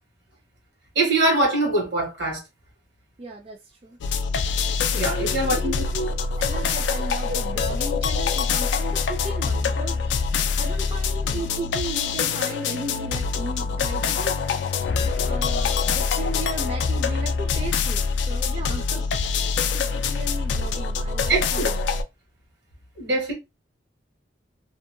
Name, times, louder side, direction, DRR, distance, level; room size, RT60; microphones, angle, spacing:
voice 1, 0.9-2.4 4.9-6.1 7.3-7.4 21.3-21.7 23.0-23.3, right 2 dB, 90° right, 1.3 m, -23 dB
voice 2, 3.2-4.0 5.0-5.7 6.4-14.7 15.3-19.0 19.3-22.0, right 2 dB, 30° right, 0.4 m, -36 dB
sound 1, 4.0-22.0, left 5 dB, 80° left, 0.3 m, -25 dB
2.7 x 2.1 x 2.5 m
head